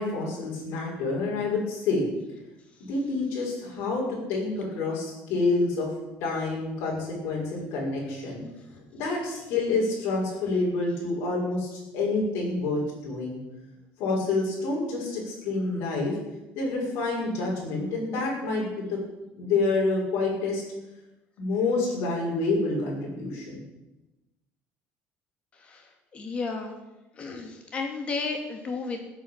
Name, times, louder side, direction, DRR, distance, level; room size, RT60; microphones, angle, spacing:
voice 1, 0.0-2.1 2.8-5.9 6.2-8.4 8.9-13.4 14.0-16.2 16.5-19.0 19.3-20.6 21.4-23.6, left 3 dB, 60° left, -4 dB, 6.4 m, -28 dB
voice 2, 25.6-26.7 27.2-29.0, left 4 dB, 25° left, 3 dB, 2.6 m, -33 dB
16.0 x 8.7 x 8.9 m, 1.0 s
cardioid pair, 175°, 5 cm